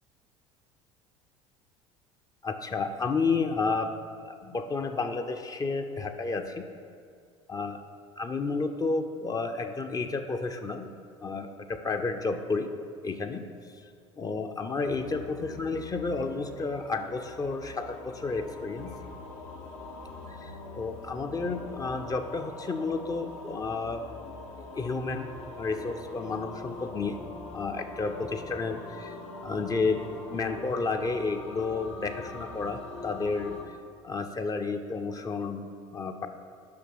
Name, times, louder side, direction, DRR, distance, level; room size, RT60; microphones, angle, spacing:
voice 1, 2.4-3.9 4.2-6.7 7.5-7.8 8.2-10.9 11.2-12.7 13.0-13.4 14.2-18.9 20.3-24.0 24.6-25.3 25.6-27.2 27.5-29.2 29.4-30.0 30.3-33.8 34.0-35.6 35.9-36.3, left 4 dB, 25° left, 6 dB, 0.6 m, -31 dB
sound 1, 14.9-33.6, left 3 dB, 65° left, 1.1 m, -43 dB
8.5 x 5.9 x 4.6 m, 2.3 s
figure-of-eight pair, 65°, 16 cm